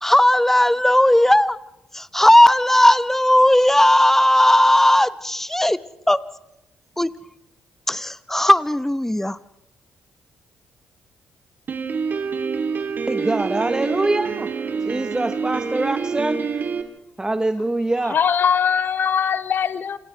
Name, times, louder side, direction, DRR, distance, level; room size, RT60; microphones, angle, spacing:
voice 1, 0.0-1.6 1.9-5.8 6.1-6.2 7.0-7.1 7.9-9.4, left 1 dB, 10° left, 1.1 m, -16 dB
Piano, 11.7-16.8, right 5 dB, 55° right, 2.9 m, -26 dB
voice 2, 13.1-14.5 14.8-16.4 17.2-18.2, right 2 dB, 20° right, 1.2 m, -24 dB
voice 3, 18.1-20.0, left 7 dB, 55° left, 1.1 m, -21 dB
28.0 x 27.5 x 3.4 m
hypercardioid pair, 45°, 4 cm